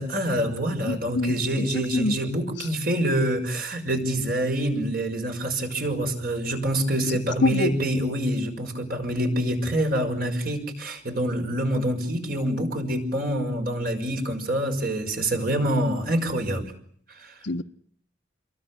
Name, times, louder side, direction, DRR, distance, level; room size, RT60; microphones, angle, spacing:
voice 1, 0.0-16.7 17.1-17.3, right 1 dB, 50° right, 6.3 m, -26 dB
voice 2, 0.8-2.2 2.6-2.7 7.1-7.8 17.4-17.6, left 2 dB, 80° left, 1.1 m, -26 dB
29.0 x 23.0 x 8.6 m
head